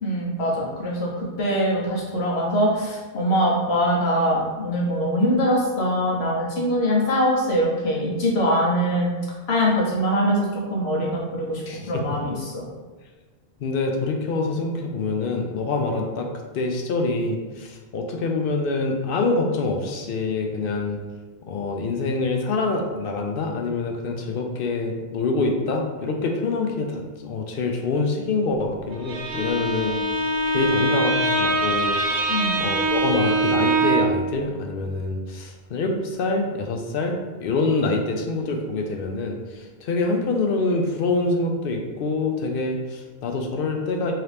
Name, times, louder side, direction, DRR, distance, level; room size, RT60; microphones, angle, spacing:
voice 1, 0.0-9.1 9.5-12.6 32.3-32.6, equal, 90° left, -3 dB, 1.2 m, -23 dB
voice 2, 13.6-16.3 16.5-21.0 21.5-30.0 30.5-32.0 32.6-44.1, left 3 dB, 70° left, 2 dB, 0.7 m, -25 dB
Bowed string instrument, 28.9-34.3, right 2 dB, 85° right, 0.9 m, -23 dB
3.7 x 2.9 x 3.3 m, 1.3 s
omnidirectional pair, 1.0 m